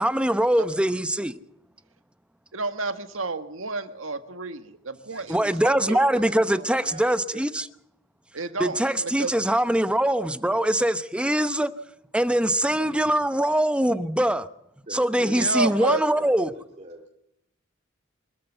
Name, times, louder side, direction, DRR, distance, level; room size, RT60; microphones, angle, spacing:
voice 1, 0.0-1.3 5.3-7.6 8.6-11.7 12.1-14.5 14.9-16.5, right 1 dB, 5° right, 0.8 m, -23 dB
voice 2, 2.5-6.1 8.3-8.8 9.2-9.4 15.2-16.0, right 3 dB, 85° right, 1.7 m, -30 dB
voice 3, 5.9-7.4 14.9-16.2 16.5-17.1, right 1 dB, 35° right, 2.3 m, -41 dB
25.0 x 13.5 x 7.9 m
head